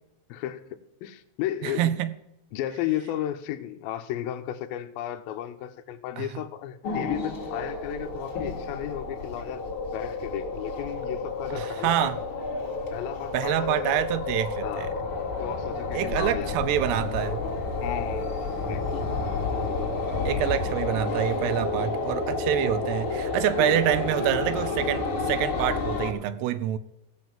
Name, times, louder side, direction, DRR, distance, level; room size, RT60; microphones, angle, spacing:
voice 1, 0.3-1.9 2.5-9.7 9.9-12.1 12.9-14.0 14.6-15.0 15.4-16.6 17.8-19.2 20.2-20.8 23.6-23.9, left 12 dB, 80° left, 2.2 m, -34 dB
voice 2, 1.6-2.1 6.2-6.3 11.5-12.2 13.3-14.9 15.9-17.4 20.2-26.8, right 12 dB, 80° right, 2.6 m, -26 dB
sound 1, 6.8-26.1, left 3 dB, 45° left, 2.0 m, -30 dB
16.0 x 5.5 x 7.3 m
omnidirectional pair, 4.8 m